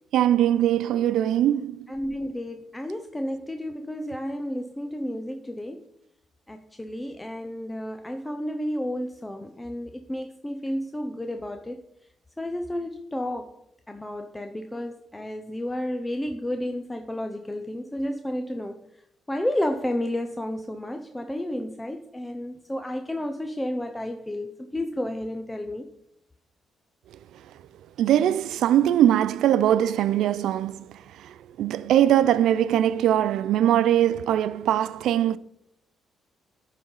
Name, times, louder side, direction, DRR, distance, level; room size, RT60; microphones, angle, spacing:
voice 1, 0.1-1.9 28.0-31.0 31.2-35.4, right 11 dB, 80° right, 0.3 m, -21 dB
voice 2, 1.9-5.8 6.5-11.8 12.4-13.6 13.9-18.8 19.3-25.9, left 1 dB, 10° left, 0.6 m, -31 dB
9.3 x 3.9 x 5.5 m
cardioid pair, 90°, 0 cm